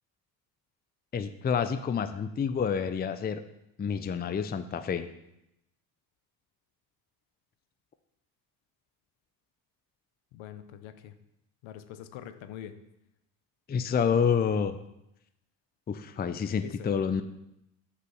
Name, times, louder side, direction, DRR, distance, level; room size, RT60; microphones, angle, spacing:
voice 1, 1.1-3.4 3.8-5.1 13.7-14.8 15.9-17.2, left 6 dB, 20° left, 10 dB, 0.5 m, -28 dB
voice 2, 10.3-11.1 11.6-12.8 16.6-16.9, left 10 dB, 65° left, 11 dB, 0.9 m, -44 dB
6.6 x 4.9 x 6.4 m, 0.85 s
hypercardioid pair, 60°, 50 cm